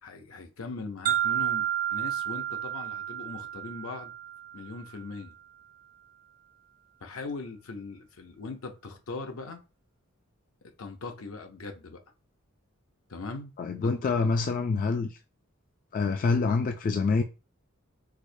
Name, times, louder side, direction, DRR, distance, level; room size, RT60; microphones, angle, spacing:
voice 1, 0.0-4.1 4.5-5.4 7.0-9.6 10.8-12.0 13.1-13.5 13.8-14.4 16.1-16.3, left 3 dB, 75° left, 0.7 m, -40 dB
sound 1, 1.1-5.0, right 11 dB, 45° right, 0.3 m, -31 dB
voice 2, 13.6-15.1 15.9-17.2, left 4 dB, 40° left, 0.3 m, -26 dB
4.7 x 2.1 x 2.6 m
head